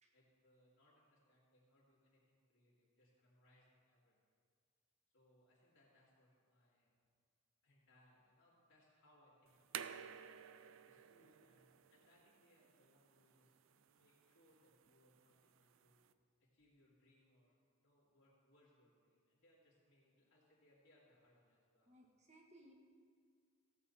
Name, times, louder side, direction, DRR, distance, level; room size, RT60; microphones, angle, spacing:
voice 1, 0.1-4.2 5.1-6.9 7.6-10.4 10.8-16.0 16.5-21.9, left 1 dB, 65° left, -8 dB, 2.7 m, -73 dB
sound 1, 9.5-16.1, right 9 dB, 65° right, 0.4 m, -54 dB
voice 2, 21.8-22.7, right 1 dB, 30° right, 1 dB, 1.5 m, -64 dB
15.5 x 8.4 x 4.2 m, 2.1 s
head